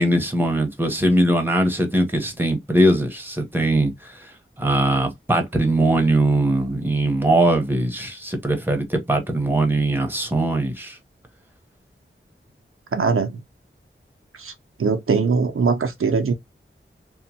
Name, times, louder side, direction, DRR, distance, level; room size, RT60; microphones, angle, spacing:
voice 1, 0.0-4.1 4.6-11.0, right 1 dB, 10° right, 0.9 m, -20 dB
voice 2, 12.9-13.4 14.4-14.5 14.8-16.3, right 5 dB, 80° right, 0.5 m, -21 dB
2.9 x 2.1 x 2.7 m
wide cardioid pair, 55°, 21 cm